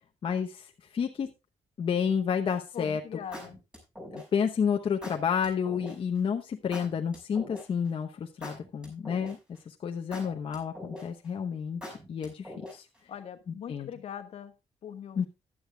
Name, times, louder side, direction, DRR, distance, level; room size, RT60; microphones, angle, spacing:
voice 1, 0.2-1.3 1.8-3.0 4.1-9.4 9.7-12.9 13.5-13.9 15.2-15.3, left 7 dB, 50° left, 3 dB, 1.0 m, -30 dB
sound 1, 2.5-2.8 3.3-4.5 5.0-5.9 6.7-7.9 8.4-9.6 10.1-11.3 11.8-13.0, left 1 dB, 10° right, 6.0 m, -43 dB
voice 2, 2.7-3.6 10.2-10.4 13.1-14.5 14.8-15.3, left 9 dB, 65° left, 7 dB, 1.4 m, -41 dB
15.0 x 11.0 x 2.3 m, 0.26 s
wide cardioid pair, 150°, 12 cm